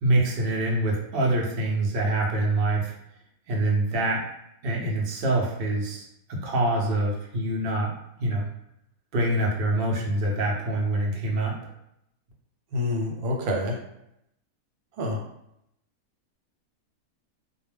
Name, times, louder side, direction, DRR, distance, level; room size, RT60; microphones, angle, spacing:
voice 1, 0.0-2.9 3.5-4.2 4.6-7.9 8.2-8.5 9.1-11.6, right 2 dB, 60° right, -2 dB, 0.6 m, -25 dB
voice 2, 12.7-13.8 15.0-15.2, left 1 dB, 85° right, 0 dB, 1.1 m, -27 dB
2.3 x 2.1 x 3.3 m, 0.80 s
omnidirectional pair, 1.5 m